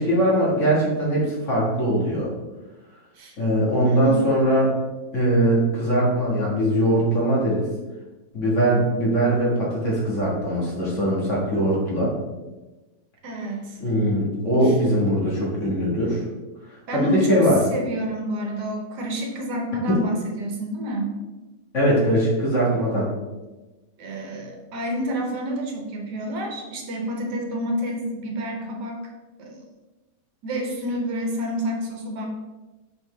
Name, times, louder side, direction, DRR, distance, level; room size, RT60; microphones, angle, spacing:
voice 1, 0.0-2.3 3.4-4.7 5.1-7.7 8.3-12.1 13.8-16.3 16.7-17.6 19.9-20.0 21.7-23.1, right 1 dB, 45° left, -5 dB, 1.9 m, -21 dB
voice 2, 3.8-4.1 13.2-13.8 14.6-14.8 16.9-21.1 24.0-29.1 29.4-29.6 30.4-32.3, right 1 dB, 75° right, 1 dB, 1.6 m, -29 dB
5.6 x 5.4 x 3.3 m, 1.1 s
omnidirectional pair, 1.9 m